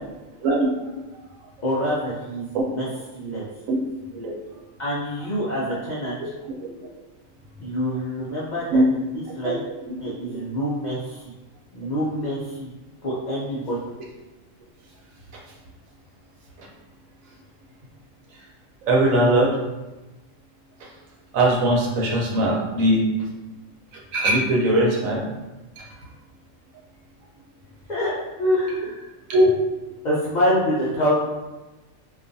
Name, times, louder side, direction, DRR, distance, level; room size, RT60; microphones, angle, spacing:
voice 1, 1.6-2.9 3.1-3.5 4.8-6.3 7.6-9.6 10.0-11.3 11.7-12.7 13.0-13.8 27.9-29.1 30.0-31.1, equal, 80° left, -7 dB, 0.4 m, -26 dB
voice 2, 18.9-19.6 20.8-20.9 21.3-23.1 24.1-25.2 25.8-25.9 29.3-29.5, right 1 dB, 80° right, -2 dB, 1.1 m, -20 dB
2.5 x 2.3 x 2.6 m, 1.1 s
omnidirectional pair, 1.4 m